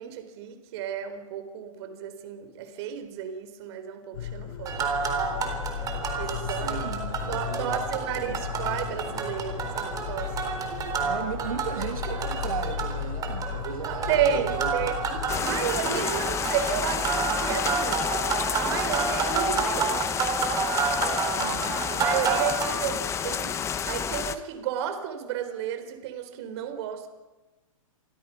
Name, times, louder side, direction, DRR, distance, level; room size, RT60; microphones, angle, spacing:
voice 1, 0.0-4.8 5.3-5.6 6.2-6.8 7.3-11.2 11.8-11.9 13.9-18.1 18.6-20.1 21.9-23.6 23.8-27.1, right 9 dB, 50° right, 9 dB, 4.2 m, -32 dB
sound 1, 4.1-15.4, left 10 dB, 75° left, 3.2 m, -35 dB
sound 2, 4.7-22.7, right 5 dB, 20° right, 3.9 m, -30 dB
voice 2, 6.6-7.9 8.1-8.4 11.0-16.8 21.3-21.9, right 8 dB, 80° right, 4 dB, 2.5 m, -36 dB
sound 3, 15.3-24.4, left 7 dB, 15° left, 1.0 m, -30 dB
28.5 x 23.5 x 6.0 m, 1.2 s
hypercardioid pair, 145°, 18 cm